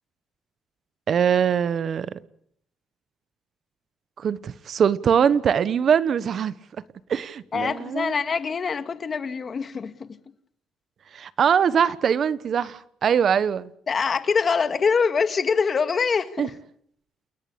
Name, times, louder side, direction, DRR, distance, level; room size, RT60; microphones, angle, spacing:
voice 1, 1.1-2.1 4.2-6.5 7.1-8.1 11.1-13.7 16.4-16.5, right 7 dB, 55° right, 1.2 m, -22 dB
voice 2, 7.5-10.2 13.9-16.5, left 5 dB, 45° left, 2.2 m, -24 dB
29.5 x 18.0 x 8.8 m
cardioid pair, 90°, 0 cm